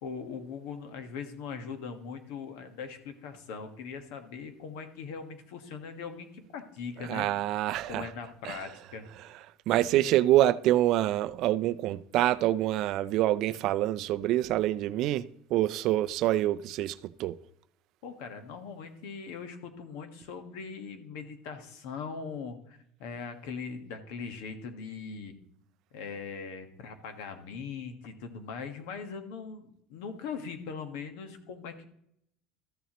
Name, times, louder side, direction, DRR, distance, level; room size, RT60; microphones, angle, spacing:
voice 1, 0.0-7.3 7.9-9.0 18.0-25.4 25.9-31.8, left 5 dB, 70° left, 1.4 m, -40 dB
voice 2, 7.0-8.1 8.4-8.6 9.7-17.4, right 14 dB, 50° right, 0.3 m, -26 dB
13.5 x 7.1 x 3.0 m
cardioid pair, 150°, 0 cm